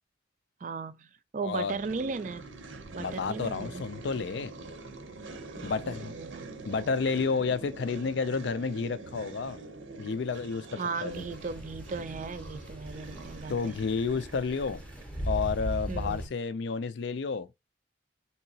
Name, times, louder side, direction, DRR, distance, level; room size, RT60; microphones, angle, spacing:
voice 1, 0.6-2.5 2.9-3.8 5.5-6.5 10.8-13.8 15.9-16.3, right 4 dB, 40° right, 0.3 m, -37 dB
voice 2, 1.4-1.8 3.0-4.5 5.6-6.1 6.6-9.6 10.0-11.2 13.5-14.8 15.3-17.5, left 5 dB, 65° left, 0.4 m, -31 dB
sound 1, 1.7-15.6, right 3 dB, 85° right, 0.7 m, -45 dB
sound 2, 11.1-16.3, equal, 5° left, 0.7 m, -38 dB
3.6 x 2.8 x 2.7 m
head